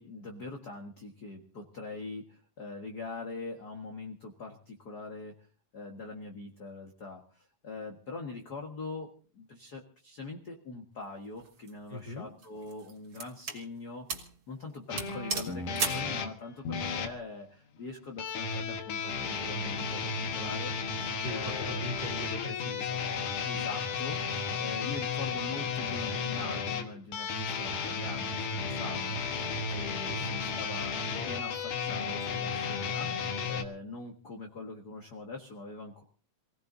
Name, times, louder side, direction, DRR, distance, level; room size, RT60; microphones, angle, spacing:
voice 1, 0.0-5.5 5.7-14.1 14.5-20.0 20.3-20.7 21.0-21.9 23.4-33.2 33.5-36.0, left 3 dB, 40° left, 2 dB, 1.8 m, -43 dB
sound 1, 11.4-11.7 12.4-13.6 14.1-14.3 14.6-14.7 15.0-16.1, right 4 dB, 45° right, 2.7 m, -35 dB
voice 2, 11.9-12.3 21.2-23.0 30.0-30.3, left 1 dB, 15° right, 1 dB, 2.7 m, -40 dB
sound 2, 14.9-17.1 18.2-33.6, left 5 dB, 85° left, 2.9 m, -33 dB
28.0 x 18.0 x 2.7 m, 0.39 s
omnidirectional pair, 3.4 m